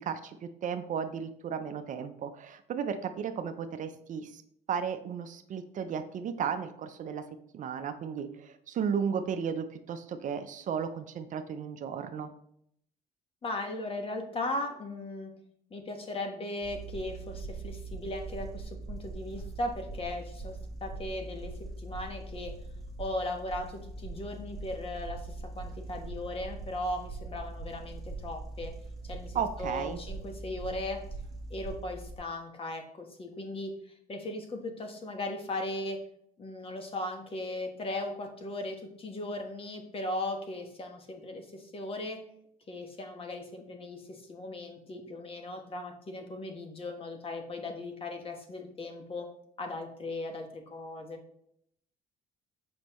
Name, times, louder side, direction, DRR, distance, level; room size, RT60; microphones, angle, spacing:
voice 1, 0.0-4.4 4.7-7.2 7.5-12.3 29.3-30.0, right 7 dB, 50° right, 8 dB, 0.6 m, -34 dB
voice 2, 13.4-15.3 15.7-21.5 21.8-22.5 23.0-28.7 29.0-31.0 31.5-36.0 36.4-42.2 42.7-49.3 49.6-51.2, left 1 dB, 35° left, 4 dB, 1.2 m, -37 dB
sound 1, 16.6-32.2, right 3 dB, ahead, 1.4 m, -42 dB
6.5 x 5.2 x 3.0 m, 0.71 s
cardioid pair, 110°, 17 cm